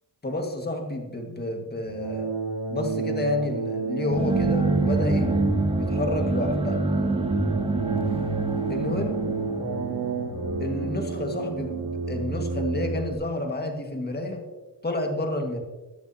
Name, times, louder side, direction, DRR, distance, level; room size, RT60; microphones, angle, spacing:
voice 1, 0.2-2.3 2.7-5.3 5.8-6.8 8.7-9.2 10.6-14.4 14.8-15.6, left 2 dB, 20° left, 3 dB, 1.9 m, -30 dB
sound 1, 1.9-13.1, right 4 dB, 55° right, 2.3 m, -30 dB
sound 2, 4.1-11.9, right 2 dB, 15° right, 1.2 m, -27 dB
14.5 x 10.0 x 2.9 m, 1.2 s
cardioid pair, 95°, 43 cm